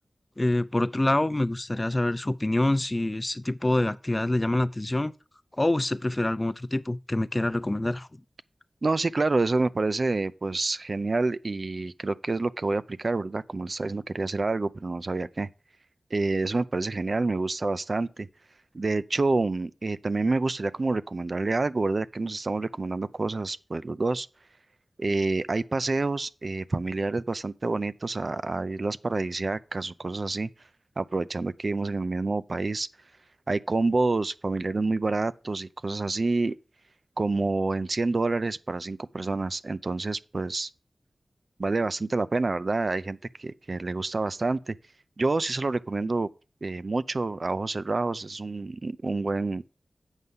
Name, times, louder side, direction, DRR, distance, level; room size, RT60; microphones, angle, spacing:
voice 1, 0.4-5.1 5.6-8.1, left 1 dB, 30° left, 0.6 m, -26 dB
voice 2, 8.8-15.5 16.1-18.3 18.7-24.3 25.0-30.5 31.0-32.9 33.5-36.6 37.2-40.7 41.6-44.8 45.2-46.3 46.6-49.6, right 3 dB, 60° right, 0.4 m, -28 dB
8.1 x 5.5 x 5.4 m
cardioid pair, 40°, 0 cm